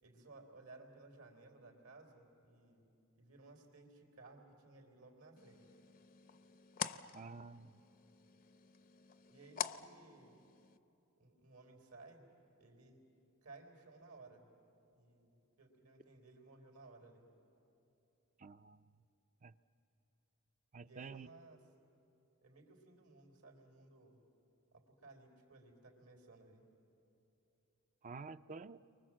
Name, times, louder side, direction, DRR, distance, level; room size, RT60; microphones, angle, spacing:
voice 1, 0.0-5.7 9.3-10.4 11.2-12.3 12.6-13.0 13.4-14.5 14.9-17.3 20.8-21.6 22.4-24.2 24.7-26.6, right 3 dB, 80° right, 2 dB, 4.0 m, -59 dB
sound 1, 5.4-10.8, left 8 dB, 40° left, 0.6 m, -47 dB
voice 2, 7.1-7.8 18.4-18.8 19.4-19.5 20.7-21.3 28.0-28.8, right 4 dB, 35° right, 13 dB, 0.5 m, -50 dB
30.0 x 24.0 x 7.6 m, 2.9 s
head